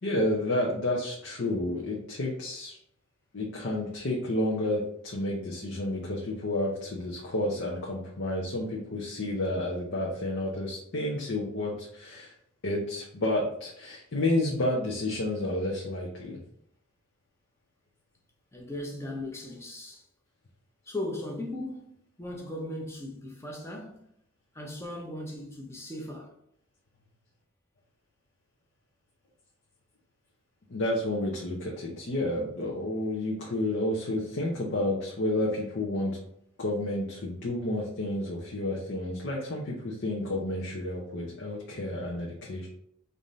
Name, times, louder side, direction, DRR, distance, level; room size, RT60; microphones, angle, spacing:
voice 1, 0.0-2.8 3.3-12.3 12.6-16.4 30.7-36.2 36.6-42.7, left 1 dB, 60° left, 0.6 m, -30 dB
voice 2, 18.5-20.0 20.9-21.9 22.2-24.0 24.5-26.3, left 1 dB, 15° left, 0.7 m, -37 dB
3.4 x 2.6 x 4.0 m
head